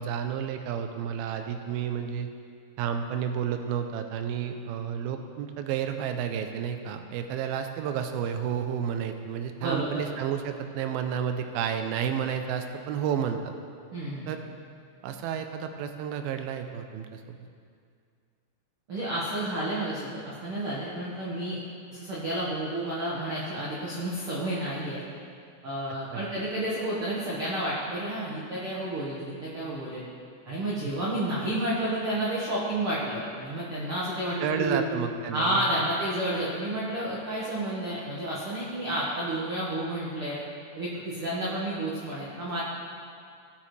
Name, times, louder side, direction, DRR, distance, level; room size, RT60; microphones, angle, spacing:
voice 1, 0.0-2.3 2.8-13.4 14.3-14.4 15.0-17.4 26.1-26.3 34.4-35.7, right 8 dB, 85° right, 6 dB, 2.2 m, -31 dB
voice 2, 9.6-10.0 13.9-14.3 18.9-21.6 21.9-25.0 25.6-30.0 30.4-34.8 35.3-40.4 40.7-42.6, right 1 dB, 60° right, -8 dB, 1.4 m, -30 dB
18.0 x 8.4 x 3.3 m, 2.3 s
omnidirectional pair, 4.9 m